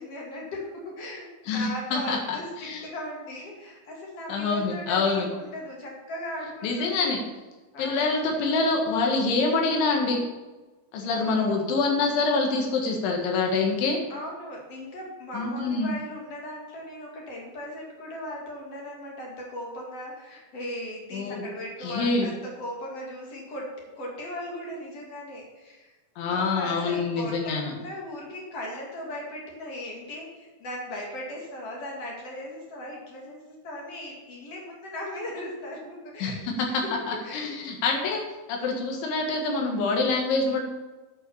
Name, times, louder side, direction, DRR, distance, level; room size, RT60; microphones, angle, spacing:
voice 1, 0.0-7.1 7.7-8.1 11.1-11.5 14.1-26.0 26.3-36.5 37.2-37.6, left 1 dB, 40° left, -2 dB, 2.4 m, -38 dB
voice 2, 1.5-2.8 4.3-5.3 6.6-7.2 7.8-10.2 10.9-14.0 15.3-15.9 21.1-21.4 21.8-22.3 26.2-27.7 36.2-38.2 38.5-40.6, left 3 dB, 70° left, 1 dB, 3.9 m, -26 dB
9.6 x 6.8 x 7.0 m, 1.2 s
omnidirectional pair, 5.9 m